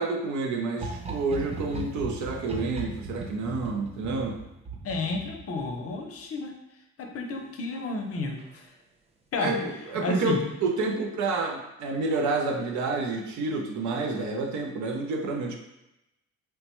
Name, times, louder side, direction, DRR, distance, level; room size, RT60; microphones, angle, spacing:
voice 1, 0.0-4.4 9.4-15.6, right 3 dB, 75° right, 2 dB, 0.6 m, -29 dB
sound 1, 0.7-6.0 7.7-8.1 8.4-8.5, right 3 dB, 20° right, 0.4 m, -38 dB
voice 2, 4.8-6.5 7.0-8.7 9.3-9.6 10.0-10.4, left 2 dB, 50° left, 3 dB, 0.6 m, -31 dB
3.2 x 2.1 x 2.9 m, 0.90 s
cardioid pair, 90°, 30 cm